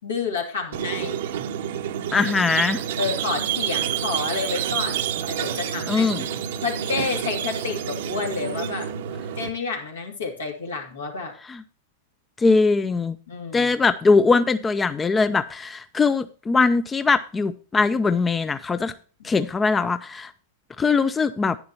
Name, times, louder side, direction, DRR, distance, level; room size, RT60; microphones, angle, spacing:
voice 1, 0.0-1.2 3.0-6.1 6.6-8.9 9.4-11.3 13.3-13.7, left 4 dB, 80° left, 2.6 m, -29 dB
Squeak, 0.7-9.5, right 9 dB, 65° right, 0.8 m, -28 dB
voice 2, 2.1-2.8 5.9-6.2 11.5-11.6 12.4-13.2 13.5-18.9 19.2-20.3 20.8-21.6, left 4 dB, 15° left, 0.5 m, -21 dB
11.0 x 9.5 x 2.9 m
hypercardioid pair, 100°, 0 cm